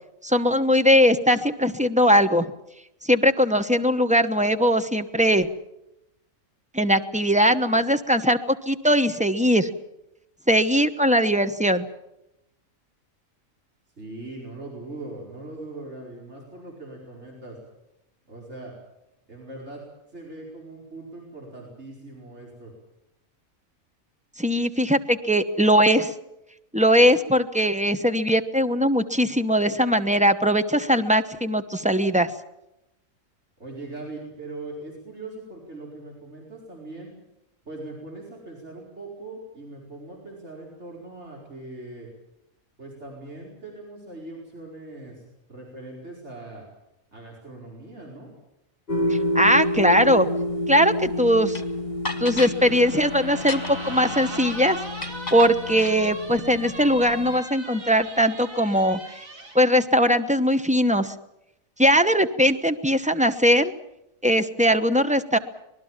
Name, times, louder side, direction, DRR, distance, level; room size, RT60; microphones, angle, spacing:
voice 1, 0.2-2.5 3.0-5.5 6.7-9.7 10.5-11.8 24.4-26.1 26.7-32.3 49.1-50.3 50.7-51.6 52.2-54.8 55.3-59.0 59.5-61.1 61.8-63.7 64.2-65.4, equal, 5° right, 10 dB, 0.9 m, -20 dB
voice 2, 14.0-17.6 18.3-18.7 19.3-19.8 20.1-22.7 33.6-37.1 37.7-42.1 42.8-45.2 45.5-46.6 47.1-48.3, right 2 dB, 55° right, -2 dB, 5.3 m, -40 dB
sound 1, 48.9-57.4, left 1 dB, 50° left, 1.3 m, -30 dB
sound 2, 51.5-51.6 52.0-52.6 53.3-53.9 55.0-56.0, left 2 dB, 30° left, 1.7 m, -33 dB
sound 3, 52.5-59.6, right 2 dB, 80° right, 3.5 m, -38 dB
25.5 x 20.0 x 7.4 m, 0.87 s
omnidirectional pair, 1.4 m